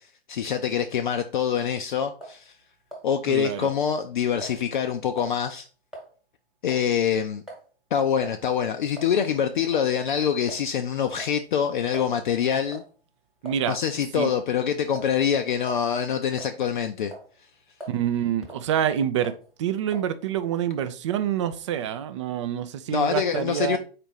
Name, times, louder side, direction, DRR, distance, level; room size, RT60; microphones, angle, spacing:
voice 1, 0.3-2.5 3.0-5.7 6.6-7.4 7.9-12.8 13.6-17.1 22.9-23.8, left 8 dB, 55° left, 0.4 m, -25 dB
sound 1, 2.2-2.4 2.9-3.4 3.6-3.8 4.4-4.6 5.2-5.4 5.9-6.1 6.7-6.9 7.5-7.6 8.2-8.4 9.0-9.1 9.7-9.9 10.5-10.7 11.2-12.2 12.7-12.9 13.5-13.8 14.2-14.4 15.0-15.1 15.6-15.8 16.4-16.8 17.1-17.3 17.8-18.0 18.4-18.7 19.2-19.5 19.9-20.1, right 1 dB, ahead, 1.2 m, -42 dB
voice 2, 3.3-3.7 13.4-13.8 14.1-14.3 17.9-23.8, right 10 dB, 30° right, 0.4 m, -27 dB
4.3 x 2.5 x 4.7 m
figure-of-eight pair, 115°, 31 cm